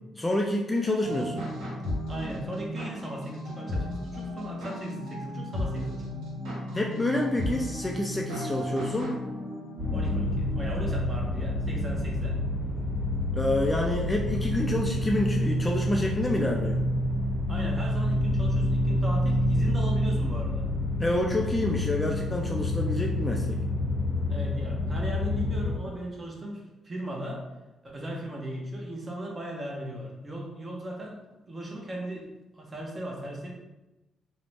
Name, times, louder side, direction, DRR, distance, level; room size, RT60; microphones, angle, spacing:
voice 1, 0.2-1.4 6.7-9.1 13.3-16.8 21.0-23.6, left 1 dB, 15° left, 0 dB, 0.3 m, -28 dB
sound 1, 1.0-10.9, left 1 dB, 90° right, 1.0 m, -35 dB
voice 2, 2.1-6.1 9.9-12.4 17.5-20.7 24.3-27.4 27.8-33.5, right 1 dB, 30° right, -1 dB, 0.7 m, -37 dB
sound 2, 9.8-25.7, left 1 dB, 60° right, 1.2 m, -28 dB
2.5 x 2.0 x 3.2 m, 1.0 s
cardioid pair, 90°, 0 cm